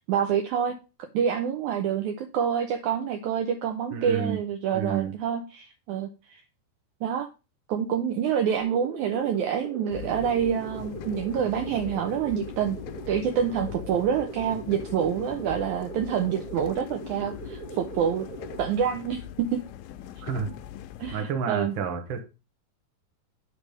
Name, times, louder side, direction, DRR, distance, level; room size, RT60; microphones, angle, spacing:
voice 1, 0.1-6.4 7.0-7.3 7.7-12.8 13.1-18.3 18.6-19.6 21.0-21.7, right 8 dB, 85° right, 5 dB, 1.7 m, -27 dB
voice 2, 3.9-4.4 4.7-5.1 20.2-20.5 21.1-22.2, right 6 dB, 65° right, 5 dB, 1.2 m, -30 dB
sound 1, 8.6-18.6, right 2 dB, 35° right, 1.5 m, -40 dB
sound 2, 9.9-21.2, left 11 dB, 80° left, 2.1 m, -42 dB
9.9 x 3.4 x 5.1 m, 0.29 s
omnidirectional pair, 4.3 m